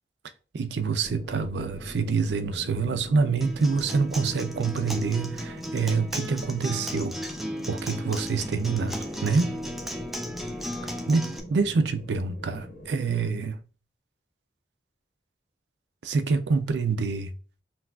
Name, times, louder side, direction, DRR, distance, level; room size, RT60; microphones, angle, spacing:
voice 1, 0.5-7.2 7.7-9.6 11.1-13.6 16.0-17.3, right 4 dB, 80° right, 0.4 m, -26 dB
sound 1, 1.0-12.9, left 1 dB, 50° left, 1.0 m, -43 dB
Acoustic guitar, 3.4-11.4, equal, ahead, 0.3 m, -35 dB
5.8 x 2.4 x 2.3 m
head